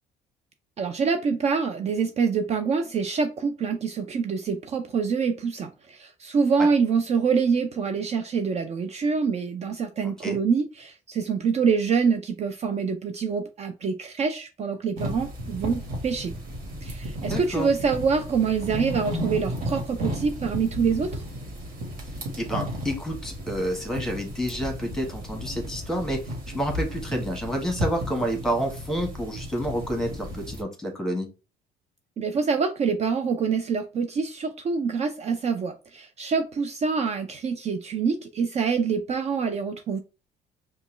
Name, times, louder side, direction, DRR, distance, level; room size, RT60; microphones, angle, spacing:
voice 1, 0.8-16.3 16.8-21.2 32.2-40.0, right 5 dB, 40° right, 0.5 m, -26 dB
sound 1, 15.0-30.6, equal, 55° right, 1.7 m, -34 dB
voice 2, 17.3-17.7 22.4-26.2 26.5-31.3, equal, 5° left, 1.4 m, -29 dB
5.2 x 2.3 x 3.2 m
cardioid pair, 110°, 17 cm